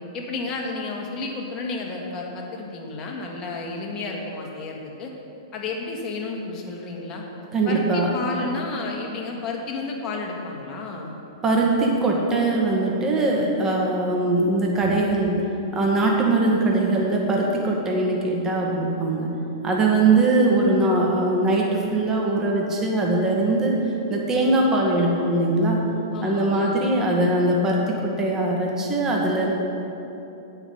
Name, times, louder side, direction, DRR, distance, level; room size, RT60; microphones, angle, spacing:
voice 1, 0.1-5.1 5.5-7.2 7.6-11.1 26.1-26.9, left 3 dB, 25° left, -1 dB, 1.7 m, -31 dB
voice 2, 7.5-8.1 11.4-15.4 15.7-19.3 19.6-23.8 24.1-25.8 26.2-29.5, right 2 dB, 20° right, -2 dB, 1.6 m, -21 dB
8.9 x 5.8 x 8.1 m, 3.0 s
figure-of-eight pair, 105°, 2 cm